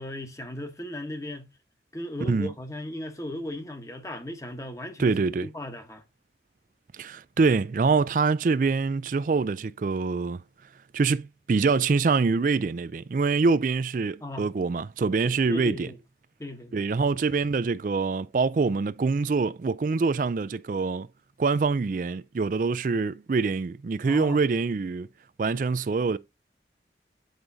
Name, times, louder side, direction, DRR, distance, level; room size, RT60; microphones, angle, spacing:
voice 1, 0.0-1.5 1.9-6.0 14.2-14.5 15.5-16.0 16.4-16.8 24.0-24.4, left 1 dB, 15° left, 1.1 m, -36 dB
voice 2, 2.2-2.5 5.0-5.5 6.9-10.4 10.9-15.9 16.7-21.1 21.4-25.1 25.4-26.2, right 4 dB, 50° right, 0.4 m, -25 dB
7.9 x 5.0 x 2.7 m
head